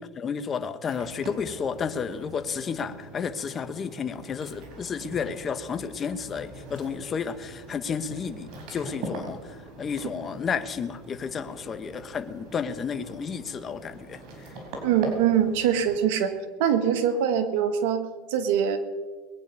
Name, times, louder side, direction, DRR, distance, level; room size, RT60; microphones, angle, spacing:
voice 1, 0.0-14.5, left 6 dB, 30° left, 10 dB, 1.1 m, -32 dB
sound 1, 0.8-16.0, right 1 dB, 55° right, 4.6 m, -42 dB
voice 2, 14.8-16.3 16.6-18.8, right 8 dB, 75° right, 8 dB, 1.7 m, -23 dB
21.0 x 9.2 x 5.4 m, 1.5 s
supercardioid pair, 115°, 0 cm